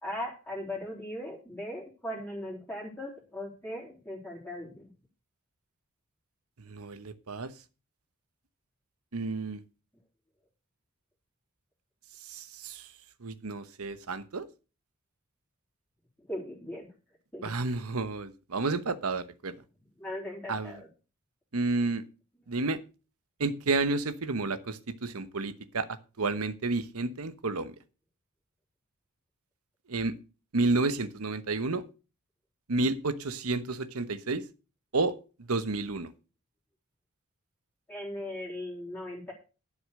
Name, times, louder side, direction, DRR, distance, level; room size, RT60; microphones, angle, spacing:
voice 1, 0.0-4.9 16.3-16.9 17.3-17.5 20.0-20.9 37.9-39.3, left 1 dB, 10° left, -4 dB, 3.3 m, -38 dB
voice 2, 6.6-7.5 9.1-9.6 12.3-12.9 13.2-14.5 17.4-19.5 20.5-20.8 21.5-22.0 22.5-22.8 23.4-25.9 26.2-27.7 29.9-30.1 30.5-31.8 32.7-34.4 34.9-35.1 35.5-36.1, right 3 dB, 75° right, 12 dB, 1.0 m, -30 dB
11.0 x 6.2 x 6.5 m, 0.33 s
head